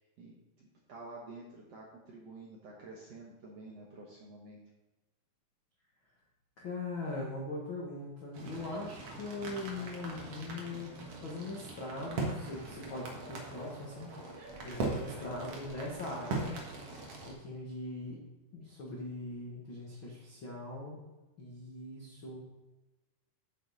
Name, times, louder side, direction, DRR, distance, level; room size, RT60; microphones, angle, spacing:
voice 1, 0.2-4.6, right 2 dB, 85° right, -3 dB, 1.4 m, -50 dB
voice 2, 6.6-10.9 11.2-14.1 14.6-16.6 17.3-18.2 18.5-21.0 21.4-22.4, left 2 dB, 85° left, -4 dB, 1.1 m, -41 dB
sound 1, 8.3-17.3, right 3 dB, 55° right, 1.8 m, -40 dB
8.8 x 7.5 x 4.1 m, 1.1 s
omnidirectional pair, 4.7 m